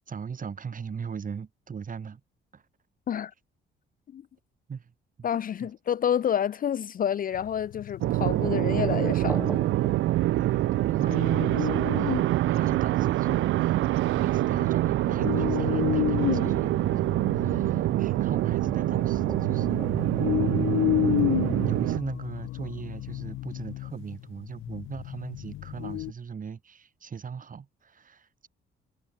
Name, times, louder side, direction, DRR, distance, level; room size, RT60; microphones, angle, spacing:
voice 1, 0.0-2.2 2.5-2.6 4.7-4.9 5.2-5.3 5.6-5.7 10.3-13.8 14.1-19.9 21.6-28.5, right 6 dB, 40° right, 4.4 m, -39 dB
voice 2, 5.2-9.6, left 9 dB, 45° left, 0.5 m, -29 dB
sound 1, 7.3-9.2 10.9-12.4 12.7-12.8 13.3-13.8 14.3-26.1, left 16 dB, 85° left, 0.7 m, -32 dB
sound 2, 8.0-22.0, right 16 dB, 75° right, 0.5 m, -25 dB
sound 3, 8.6-21.5, right 1 dB, 5° right, 2.1 m, -44 dB
cardioid pair, 90°, 20 cm